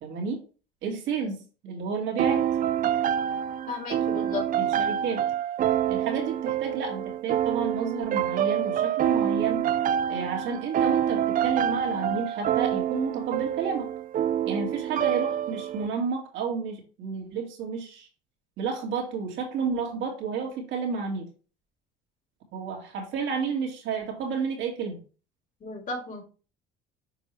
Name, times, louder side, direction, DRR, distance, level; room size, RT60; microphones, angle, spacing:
voice 1, 0.0-0.4 0.8-2.4 4.6-5.2 5.9-9.6 10.1-13.9 14.5-18.1 18.6-21.3 22.5-25.0, right 5 dB, 65° right, 0 dB, 2.4 m, -31 dB
sound 1, 2.2-15.9, right 10 dB, 40° right, 0.5 m, -27 dB
voice 2, 3.7-4.5 25.6-26.2, left 4 dB, 40° left, -1 dB, 3.6 m, -34 dB
7.0 x 4.7 x 3.4 m, 0.37 s
supercardioid pair, 85°, 21 cm